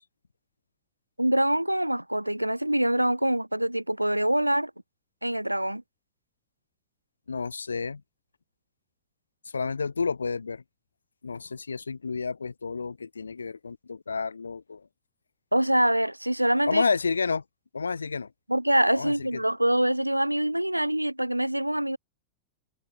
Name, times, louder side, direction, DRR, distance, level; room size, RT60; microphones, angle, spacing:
voice 1, 1.2-4.7 5.2-5.8 15.5-16.8 18.5-22.0, right 1 dB, 90° right, 0.8 m, -25 dB
voice 2, 7.3-8.0 9.5-10.6 11.2-14.9 16.7-17.4 17.7-18.3 18.9-19.4, left 4 dB, 75° left, 1.6 m, -30 dB
figure-of-eight pair, 90°, 0 cm